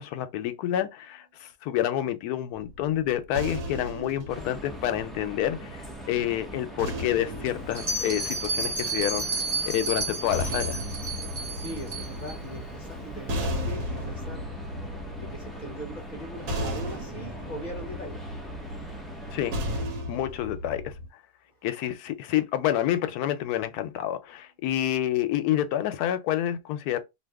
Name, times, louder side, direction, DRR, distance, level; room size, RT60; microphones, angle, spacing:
voice 1, 0.0-5.8 6.1-9.2 9.7-10.8 19.3-19.5 20.1-20.9 21.6-27.0, left 12 dB, 80° left, 1.1 m, -28 dB
sound 1, 2.6-5.9 6.8-9.1 10.0-21.1, left 1 dB, 85° right, 1.4 m, -35 dB
sound 2, 4.3-19.9, right 1 dB, ahead, 0.4 m, -41 dB
Bell, 7.7-12.3, right 2 dB, 40° right, 0.9 m, -31 dB
voice 2, 11.5-14.5 15.2-18.2, right 1 dB, 40° left, 0.6 m, -40 dB
2.7 x 2.6 x 3.4 m
omnidirectional pair, 1.6 m